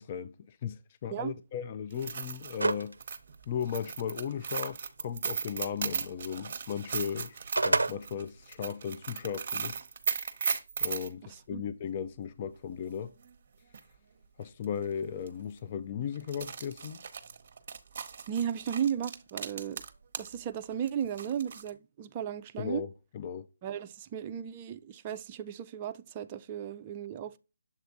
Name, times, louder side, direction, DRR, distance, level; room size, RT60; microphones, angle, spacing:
voice 1, 0.0-3.0 3.5-9.8 10.8-13.1 14.4-17.0 22.6-23.5, left 8 dB, 35° left, 0.4 m, -36 dB
sound 1, 1.9-11.1 13.3-13.4 13.7-13.8 14.6-14.8 15.2-15.3 16.2-20.4 20.6-21.7, right 6 dB, 45° right, 0.8 m, -37 dB
sound 2, 2.6-2.9 3.3-3.4 7.2-7.9, right 3 dB, 85° right, 0.5 m, -26 dB
voice 2, 18.3-19.8 20.2-22.8 23.6-27.4, right 9 dB, 25° right, 0.4 m, -35 dB
7.2 x 3.3 x 4.0 m
figure-of-eight pair, 155°, 0 cm